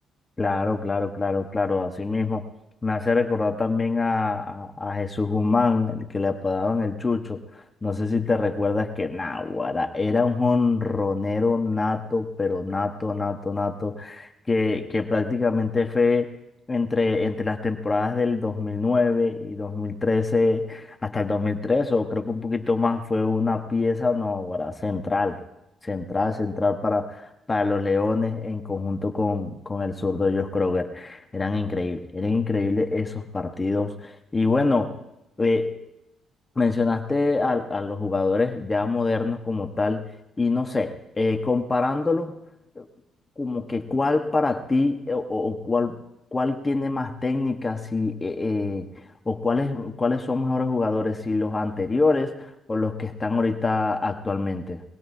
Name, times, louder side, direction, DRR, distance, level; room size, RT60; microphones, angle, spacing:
voice 1, 0.4-2.4 2.8-16.3 16.7-25.4 25.8-35.0 35.4-35.7 36.6-42.4 42.7-42.8 43.4-46.0 46.3-48.9 49.2-54.8, left 3 dB, 25° left, 4 dB, 1.4 m, -25 dB
21.5 x 21.0 x 2.8 m, 0.87 s
cardioid pair, 90°, 0 cm